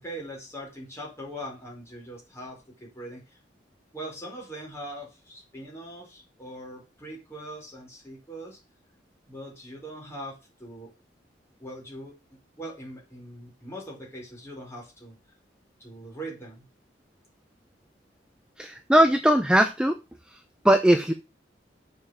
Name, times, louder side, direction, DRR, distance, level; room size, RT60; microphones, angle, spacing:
voice 1, 0.0-3.4 3.9-8.6 9.3-10.9 11.6-12.1 12.6-15.2 15.8-16.7, right 1 dB, 15° left, -3 dB, 5.0 m, -41 dB
voice 2, 18.6-20.0 20.3-21.1, right 1 dB, 5° right, 6 dB, 0.7 m, -20 dB
7.2 x 5.6 x 6.7 m, 0.28 s
head